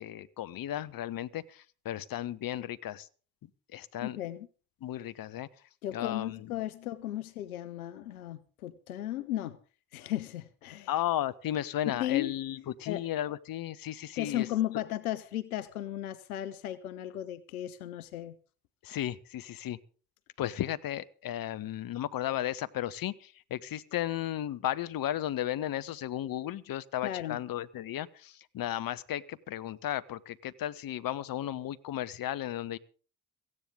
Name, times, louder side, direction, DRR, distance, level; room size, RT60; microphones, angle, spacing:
voice 1, 0.0-3.1 3.7-4.2 4.8-5.5 5.9-6.9 10.9-14.5 18.8-19.8 20.4-32.8, left 12 dB, 55° left, 0.9 m, -35 dB
voice 2, 4.0-4.5 5.8-9.6 9.9-10.9 11.9-12.3 12.9-13.0 14.2-18.4 27.0-27.4, left 13 dB, 90° left, 0.6 m, -35 dB
17.5 x 15.5 x 3.7 m
hypercardioid pair, 40°, 42 cm